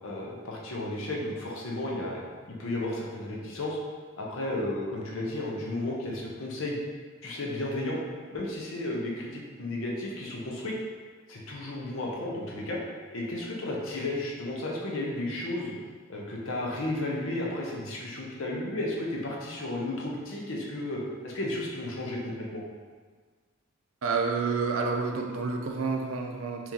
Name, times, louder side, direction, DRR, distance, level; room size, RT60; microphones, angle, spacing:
voice 1, 0.0-2.2 2.5-3.8 4.2-6.8 7.2-8.0 8.3-10.7 11.3-12.8 13.1-15.7 16.1-22.6, left 1 dB, 75° left, -3 dB, 0.7 m, -33 dB
voice 2, 24.0-26.7, right 4 dB, 75° right, 2 dB, 0.5 m, -29 dB
3.0 x 2.8 x 3.7 m, 1.5 s
head